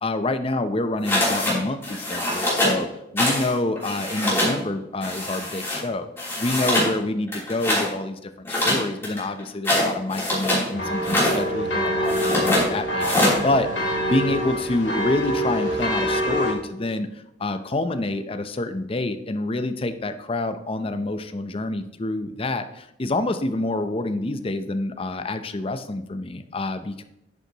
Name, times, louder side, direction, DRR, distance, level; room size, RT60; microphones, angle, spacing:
voice 1, 0.0-2.9 3.1-6.1 6.4-27.0, left 2 dB, 30° left, 9 dB, 0.6 m, -27 dB
sound 1, 1.0-1.6 1.8-2.8 3.2-3.5 3.8-4.6 5.0-5.8 6.2-6.9 7.3-7.9 8.4-10.7 11.0-11.4 12.0-12.7 13.0-13.4, left 1 dB, 15° left, 3.2 m, -23 dB
sound 2, 10.7-16.5, equal, 65° left, 2.0 m, -25 dB
10.5 x 8.1 x 2.9 m, 0.83 s
head